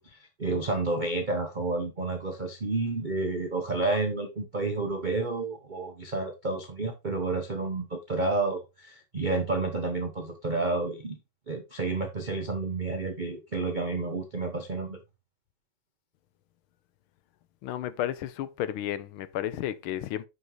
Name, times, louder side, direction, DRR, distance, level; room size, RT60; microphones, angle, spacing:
voice 1, 0.0-11.2 11.5-15.0, right 3 dB, 75° right, 0.4 m, -30 dB
voice 2, 17.6-20.3, left 11 dB, 80° left, 1.5 m, -32 dB
9.5 x 5.7 x 3.1 m
omnidirectional pair, 2.4 m